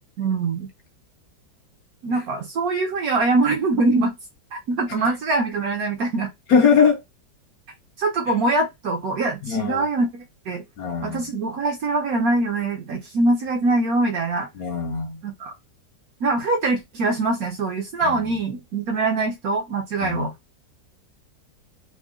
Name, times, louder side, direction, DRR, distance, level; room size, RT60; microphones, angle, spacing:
voice 1, 0.2-0.7 2.0-4.1 4.5-6.3 8.0-10.6 11.0-14.5 15.2-15.5 16.2-20.3, right 3 dB, 65° right, 0.9 m, -23 dB
voice 2, 6.5-7.0 9.5-9.9 10.8-11.2 14.6-15.2 18.1-18.3 20.0-20.3, left 6 dB, 65° left, 0.9 m, -21 dB
3.7 x 2.1 x 3.6 m
omnidirectional pair, 2.0 m